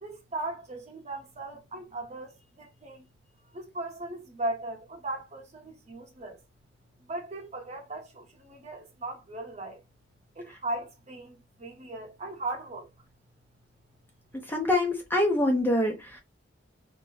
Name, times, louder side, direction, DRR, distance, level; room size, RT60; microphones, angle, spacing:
voice 1, 0.0-3.0 3.5-6.4 7.0-9.8 10.3-12.9, right 2 dB, 35° right, 0.9 m, -38 dB
voice 2, 14.5-16.2, left 1 dB, 10° left, 0.5 m, -25 dB
2.7 x 2.0 x 3.1 m
head